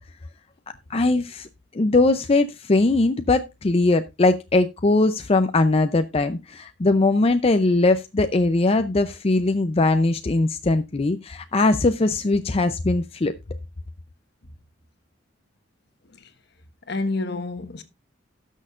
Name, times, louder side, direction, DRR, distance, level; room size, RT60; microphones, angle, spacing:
voice 1, 0.9-1.5 1.7-13.3, left 2 dB, 35° left, 0.5 m, -20 dB
voice 2, 16.9-17.8, left 2 dB, 65° left, 1.3 m, -29 dB
17.5 x 6.5 x 2.4 m
head